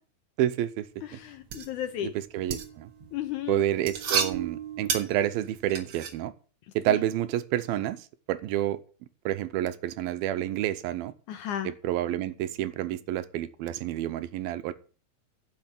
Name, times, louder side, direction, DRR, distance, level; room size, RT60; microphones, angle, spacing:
voice 1, 0.4-0.9 2.0-2.9 3.5-6.3 6.8-8.8 9.3-11.1 11.6-14.7, right 12 dB, 85° right, 13 dB, 2.6 m, -29 dB
sound 1, 0.9-6.1, right 7 dB, 50° right, 1.9 m, -33 dB
voice 2, 1.0-2.1 3.1-3.6 6.9-7.0 11.3-11.7, left 11 dB, 70° left, 8 dB, 2.0 m, -34 dB
10.5 x 6.4 x 7.6 m, 0.38 s
omnidirectional pair, 4.3 m